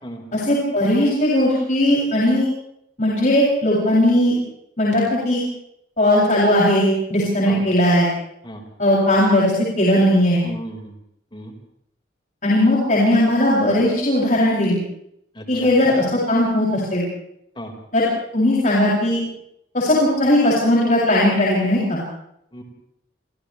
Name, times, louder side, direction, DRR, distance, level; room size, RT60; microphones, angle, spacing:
voice 1, 0.3-2.5 3.0-4.3 4.8-5.4 6.0-8.1 8.8-10.4 12.4-14.8 15.5-17.0 17.9-18.1 18.3-19.2 19.7-22.0, left 1 dB, 40° left, -6 dB, 7.8 m, -18 dB
voice 2, 10.4-10.9 11.3-11.5 15.3-15.7 17.6-17.7 22.5-22.6, equal, 25° left, 1 dB, 5.3 m, -35 dB
30.0 x 28.5 x 3.5 m, 0.75 s
head